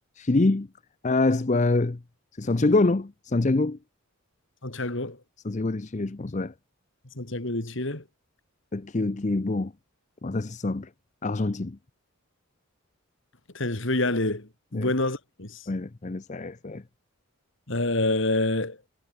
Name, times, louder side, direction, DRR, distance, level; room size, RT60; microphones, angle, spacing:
voice 1, 0.2-0.7 1.0-2.0 2.4-3.8 5.4-6.5 8.7-9.7 10.2-10.9 11.2-11.8 14.7-14.9 15.7-16.8, left 2 dB, 35° left, 0.6 m, -25 dB
voice 2, 4.6-5.2 7.2-8.0 13.5-15.6 17.7-18.8, left 2 dB, 55° left, 2.3 m, -27 dB
head